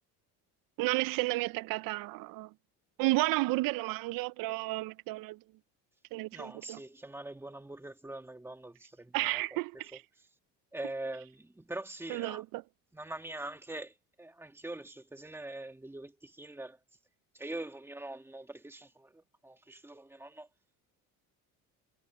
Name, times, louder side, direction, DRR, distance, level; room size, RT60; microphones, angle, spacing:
voice 1, 0.8-2.5 3.0-5.4 6.1-6.8 9.1-10.0 12.1-12.6, right 21 dB, 70° right, 0.5 m, -32 dB
voice 2, 6.3-9.6 9.9-10.0 10.7-12.4 12.9-16.8 17.3-20.5, right 2 dB, 5° right, 1.8 m, -43 dB
cardioid pair, 115°, 35 cm